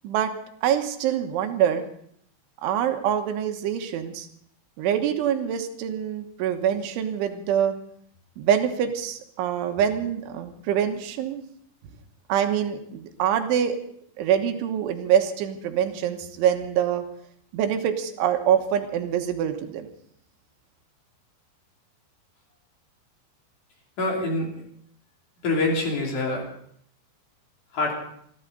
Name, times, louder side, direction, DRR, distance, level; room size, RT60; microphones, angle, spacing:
voice 1, 0.6-1.8 2.6-4.3 4.8-7.8 8.4-11.4 12.3-13.8 14.2-17.0 17.5-19.9, right 9 dB, 90° right, 6 dB, 3.7 m, -25 dB
voice 2, 24.0-24.5 25.4-26.4 27.7-27.9, left 2 dB, 45° left, 0 dB, 4.2 m, -25 dB
28.0 x 12.5 x 4.0 m, 0.66 s
omnidirectional pair, 5.3 m